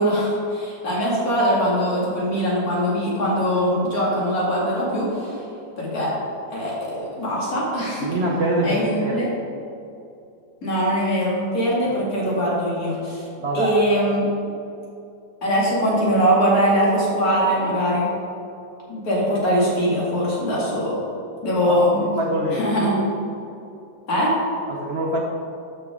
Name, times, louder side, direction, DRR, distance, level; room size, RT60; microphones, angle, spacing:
voice 1, 0.0-5.4 5.8-6.1 6.5-8.2 8.6-9.3 10.6-13.2 13.5-14.2 15.4-18.1 18.9-21.0 21.4-22.1 22.5-23.0 24.1-24.4, equal, 50° left, -6 dB, 2.7 m, -22 dB
voice 2, 8.0-9.3 11.9-12.0 13.4-13.8 21.7-22.7 24.7-25.2, right 1 dB, 50° right, -1 dB, 0.8 m, -25 dB
12.0 x 5.9 x 3.6 m, 2.6 s
omnidirectional pair, 2.0 m